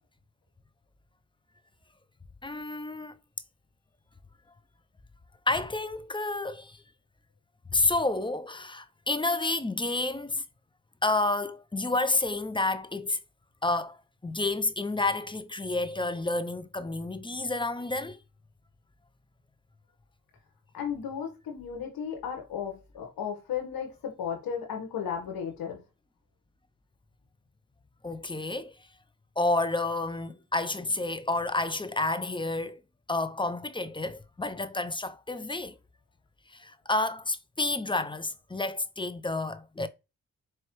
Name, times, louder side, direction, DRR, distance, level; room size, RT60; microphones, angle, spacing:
voice 1, 2.4-3.1 5.5-6.8 7.7-10.4 11.0-13.2 13.6-14.0 14.2-18.2 28.0-28.7 29.4-32.8 33.1-35.7 36.5-39.9, left 2 dB, 15° left, 0.5 m, -30 dB
voice 2, 20.7-25.8, left 7 dB, 85° left, 1.4 m, -34 dB
4.4 x 3.1 x 3.1 m
supercardioid pair, 40°, 35 cm